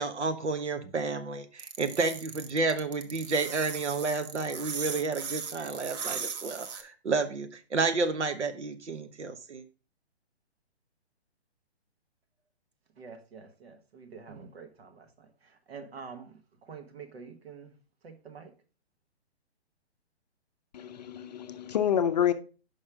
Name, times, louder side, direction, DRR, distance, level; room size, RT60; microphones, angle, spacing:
voice 1, 0.0-9.6, right 4 dB, 85° right, 1.1 m, -31 dB
sound 1, 1.6-6.8, right 6 dB, 40° right, 0.8 m, -38 dB
voice 2, 13.0-17.8 18.0-18.5, right 5 dB, 60° right, 1.4 m, -47 dB
voice 3, 20.7-22.3, left 9 dB, 40° left, 0.5 m, -27 dB
5.5 x 5.3 x 4.8 m
hypercardioid pair, 140°, 34 cm